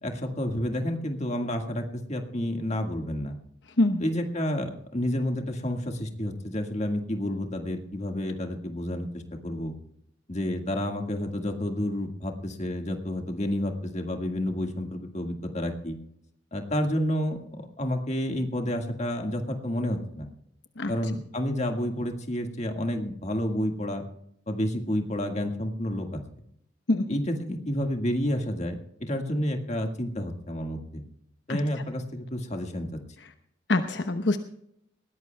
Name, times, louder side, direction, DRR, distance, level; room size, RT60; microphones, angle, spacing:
voice 1, 0.0-3.4 4.0-9.7 10.3-16.0 16.5-20.3 20.9-24.0 24.5-26.2 27.1-31.0 31.5-33.0, left 1 dB, 35° left, 4 dB, 1.8 m, -30 dB
voice 2, 33.7-34.4, left 2 dB, 70° left, 7 dB, 1.0 m, -24 dB
20.5 x 17.0 x 2.3 m, 0.72 s
head